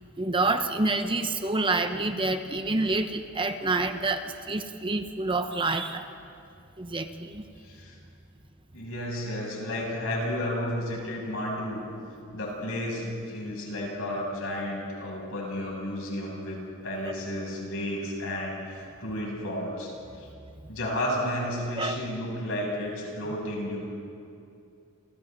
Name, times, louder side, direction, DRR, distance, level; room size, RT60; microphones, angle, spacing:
voice 1, 0.2-6.1 6.8-7.4 21.8-22.0, right 3 dB, 25° right, 7 dB, 0.9 m, -27 dB
voice 2, 7.6-8.0 8.7-11.8 12.3-16.6 16.8-19.9 20.2-20.3 20.7-23.8, left 1 dB, 65° left, -3 dB, 7.7 m, -32 dB
29.0 x 28.5 x 4.1 m, 2.5 s
head